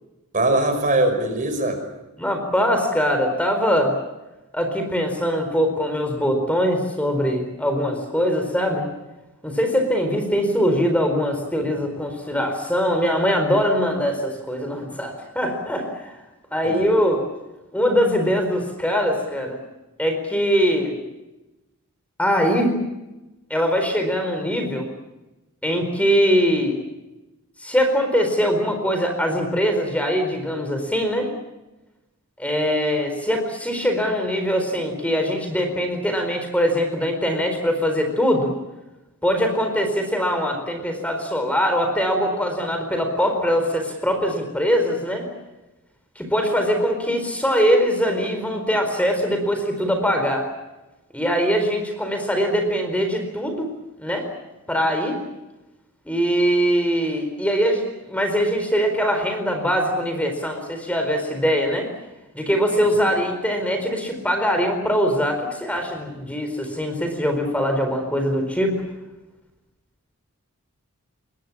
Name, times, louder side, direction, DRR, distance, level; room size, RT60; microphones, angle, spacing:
voice 1, 0.3-1.8 16.6-16.8 62.9-63.1, right 2 dB, 35° right, 7 dB, 5.5 m, -21 dB
voice 2, 2.2-3.9 4.5-8.8 9.4-16.1 16.5-17.2 17.7-19.6 20.0-20.9 22.2-22.7 23.5-24.9 25.6-26.8 27.6-31.3 32.4-38.6 39.2-45.3 46.2-50.5 51.1-53.7 54.0-54.3 54.7-55.2 56.1-61.9 62.3-68.7, equal, 5° left, 5 dB, 4.4 m, -22 dB
29.0 x 22.0 x 7.3 m, 1.0 s
head